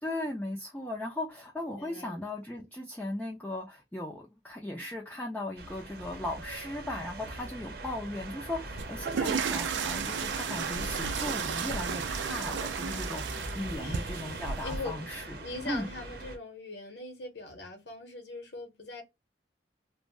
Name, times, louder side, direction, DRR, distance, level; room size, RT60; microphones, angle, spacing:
voice 1, 0.0-15.4 15.7-15.9, left 1 dB, 10° left, 0.4 m, -37 dB
voice 2, 1.7-2.2 2.5-2.7 13.8-14.1 14.6-19.0, left 3 dB, 65° left, 0.9 m, -41 dB
sound 1, 5.6-16.4, right 2 dB, 55° right, 0.7 m, -40 dB
sound 2, 8.8-14.8, right 6 dB, 90° right, 0.4 m, -34 dB
2.5 x 2.1 x 3.1 m
head